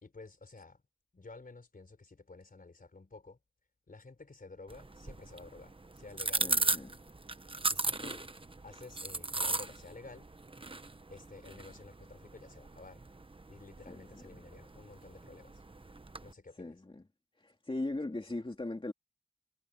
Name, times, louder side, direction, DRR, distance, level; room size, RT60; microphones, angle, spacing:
voice 1, 0.0-0.8 1.1-3.4 3.9-6.8 7.7-8.3 8.6-10.3 11.1-13.0 13.5-15.6 16.2-16.8, left 3 dB, 65° left, 4.1 m, -52 dB
sound 1, 4.7-16.3, right 3 dB, 35° right, 1.0 m, -38 dB
voice 2, 6.4-6.9 13.9-14.3 16.6-17.0 17.4-18.9, left 2 dB, 35° left, 2.5 m, -39 dB
wide cardioid pair, 80°, 16 cm